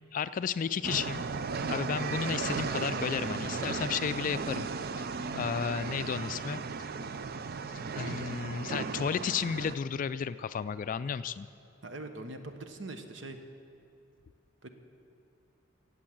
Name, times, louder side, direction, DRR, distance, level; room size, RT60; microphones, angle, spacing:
voice 1, 0.1-1.2 1.7-4.7 5.3-6.6 7.9-11.5, left 7 dB, 45° left, 14 dB, 0.3 m, -33 dB
sound 1, 0.8-9.8, right 4 dB, 50° right, 0.5 m, -35 dB
voice 2, 11.8-13.4 14.6-14.7, right 2 dB, 70° right, 7 dB, 1.2 m, -42 dB
17.0 x 8.0 x 7.8 m, 2.6 s
head